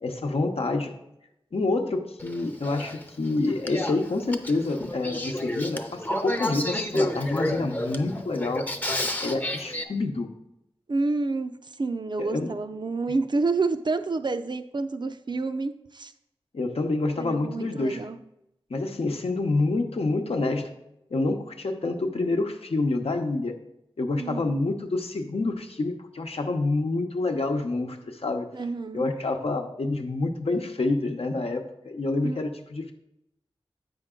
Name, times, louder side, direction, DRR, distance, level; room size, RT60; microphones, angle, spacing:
voice 1, 0.0-0.9 1.5-8.7 9.2-10.3 12.2-12.5 16.5-18.0 18.7-20.7 21.1-23.5 24.0-28.5 28.9-32.9, left 2 dB, 80° left, 4 dB, 0.8 m, -27 dB
Male speech man speaking / Female speech woman speaking / Conversation, 2.2-9.8, left 1 dB, 15° left, 0.6 m, -31 dB
voice 2, 10.9-16.1 17.2-18.2 24.1-24.6 28.5-29.1 32.2-32.4, right 3 dB, 50° right, 8 dB, 0.4 m, -29 dB
8.0 x 5.2 x 3.7 m, 0.84 s
wide cardioid pair, 80°, 10 cm